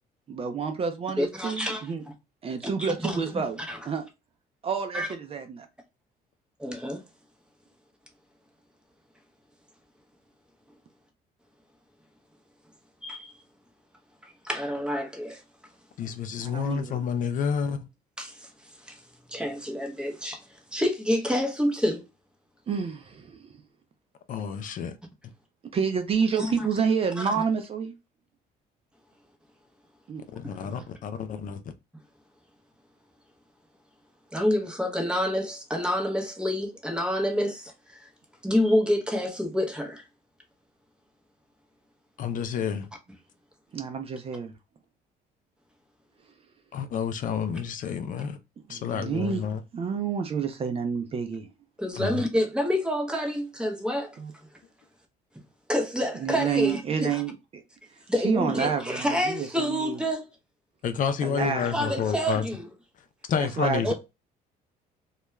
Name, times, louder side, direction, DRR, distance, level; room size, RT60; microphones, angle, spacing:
voice 1, 0.3-2.0 2.4-3.6 3.9-4.0 4.6-5.7 16.4-17.1 22.7-23.6 25.7-27.9 30.1-30.2 43.7-44.5 48.7-49.4 49.7-51.5 54.2-54.3 56.2-57.4 58.2-60.0 61.2-62.1 63.4-63.9, right 6 dB, 35° right, 0.5 m, -29 dB
voice 2, 1.2-1.9 2.8-3.4 3.7-3.8 4.9-5.1 6.6-7.0 13.0-13.3 14.2-15.4 18.2-19.0 19.3-22.0 26.4-26.7 27.2-27.4 30.4-30.7 34.3-38.1 38.4-40.0 51.8-54.2 55.7-57.2 58.1-60.2 61.4-62.7 63.8-63.9, equal, 5° right, 0.7 m, -28 dB
voice 3, 16.0-17.9 24.3-25.0 30.3-31.7 42.2-42.9 46.7-48.4 48.7-49.6 52.0-52.2 60.8-62.4 63.3-63.9, left 7 dB, 50° left, 0.4 m, -29 dB
2.3 x 2.2 x 3.0 m
cardioid pair, 110°, 17 cm